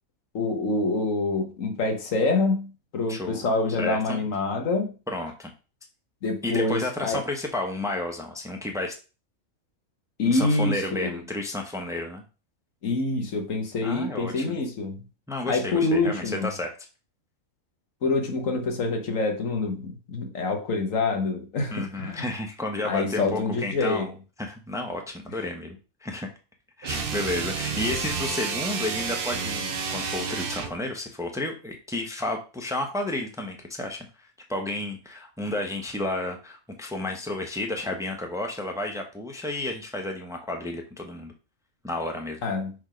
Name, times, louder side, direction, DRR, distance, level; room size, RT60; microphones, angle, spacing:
voice 1, 0.3-4.9 6.2-7.3 10.2-11.2 12.8-15.0 15.5-16.5 18.0-22.3 22.8-24.1 42.4-42.7, left 3 dB, 90° left, 1.6 m, -26 dB
voice 2, 3.1-4.2 5.1-5.5 6.4-9.0 10.2-12.2 13.8-14.6 15.3-16.7 21.7-24.1 24.4-26.3 26.8-34.1 34.5-41.3 41.8-42.4, left 2 dB, 5° right, 0.8 m, -31 dB
sound 1, 26.8-30.8, right 5 dB, 50° right, 0.9 m, -30 dB
6.5 x 3.6 x 5.0 m
omnidirectional pair, 1.3 m